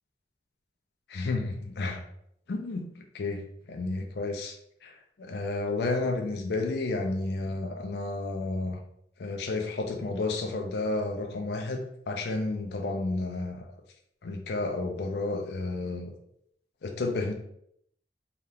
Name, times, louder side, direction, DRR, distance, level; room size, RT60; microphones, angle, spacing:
voice 1, 1.1-2.0 2.5-4.6 4.8-8.8 9.2-13.6 14.2-16.1 16.8-17.3, left 3 dB, 65° left, 3 dB, 0.4 m, -31 dB
2.8 x 2.3 x 3.4 m, 0.72 s
head